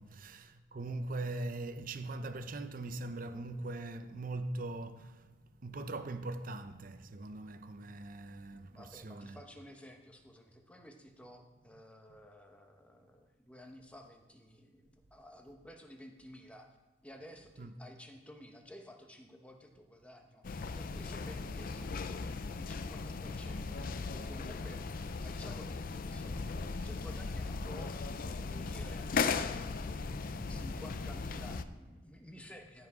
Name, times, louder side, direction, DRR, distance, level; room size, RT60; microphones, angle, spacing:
voice 1, 0.0-9.4 12.1-12.2 17.6-17.7 30.4-30.8 32.4-32.5, right 2 dB, 45° right, 0.6 m, -41 dB
voice 2, 8.5-16.7 17.0-22.2 22.5-29.9 30.5-32.9, equal, 5° left, 1.0 m, -53 dB
sound 1, 20.4-31.6, left 4 dB, 50° left, 0.4 m, -37 dB
14.0 x 5.9 x 4.9 m
head